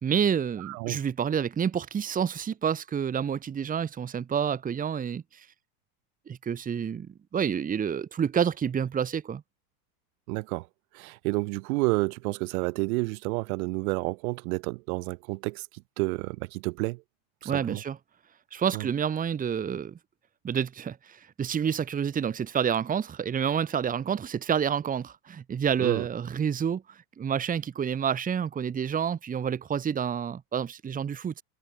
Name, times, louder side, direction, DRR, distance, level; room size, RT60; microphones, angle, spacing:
voice 1, 0.0-5.5 6.3-9.4 17.4-18.0 18.5-20.0 20.4-31.4, right 7 dB, 15° right, 2.3 m, -29 dB
voice 2, 0.6-1.0 10.3-10.7 10.9-17.0 17.4-17.8 18.7-18.9 25.8-26.1, right 25 dB, 60° right, 3.3 m, -30 dB
supercardioid pair, 155°, 49 cm